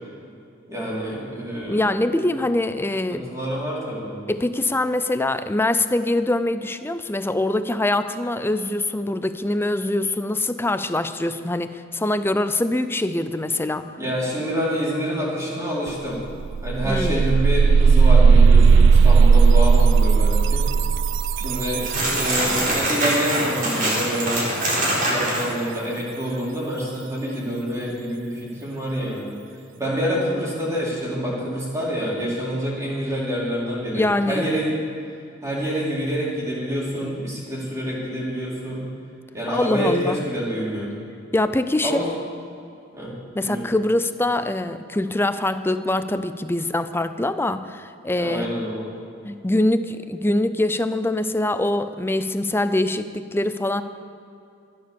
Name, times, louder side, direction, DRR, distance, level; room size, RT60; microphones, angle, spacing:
voice 1, 0.7-1.8 3.1-4.2 14.0-16.2 16.6-20.7 21.4-24.4 25.0-29.3 29.8-34.8 35.4-38.8 39.3-40.9 41.8-42.0 42.9-43.1 43.4-43.6 48.1-48.9, equal, 15° right, -6 dB, 3.9 m, -27 dB
voice 2, 1.6-3.2 4.3-13.9 16.8-17.3 33.9-34.5 39.5-40.2 41.3-42.0 43.3-48.5 49.2-53.8, left 1 dB, 10° left, 11 dB, 0.5 m, -23 dB
sound 1, 15.9-16.0 16.3-23.1, right 5 dB, 65° right, 0.3 m, -16 dB
sound 2, 21.8-25.5, right 1 dB, 45° right, 4.0 m, -23 dB
14.0 x 11.0 x 7.0 m, 2.6 s
head